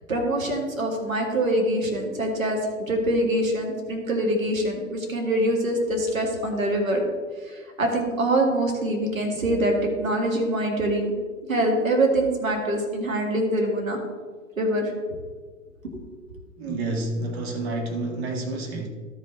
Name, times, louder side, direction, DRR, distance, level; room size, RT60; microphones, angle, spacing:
voice 1, 0.1-7.0 7.4-11.1 11.5-14.0 14.6-14.9 15.9-16.0, right 1 dB, 85° right, 1 dB, 2.0 m, -24 dB
voice 2, 16.6-18.9, right 2 dB, 50° right, 2 dB, 1.7 m, -29 dB
12.5 x 5.4 x 3.9 m, 1.5 s
figure-of-eight pair, 105°, 40 cm